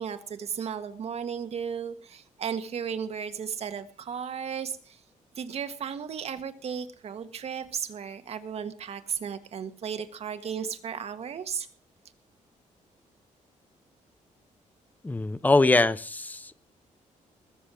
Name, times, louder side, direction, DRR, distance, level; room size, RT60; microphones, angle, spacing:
voice 1, 0.0-5.0 5.3-11.7, right 7 dB, 50° right, 9 dB, 1.6 m, -35 dB
voice 2, 15.0-16.5, left 2 dB, 15° left, 16 dB, 0.7 m, -23 dB
20.0 x 7.4 x 6.2 m, 0.41 s
cardioid pair, 135°, 13 cm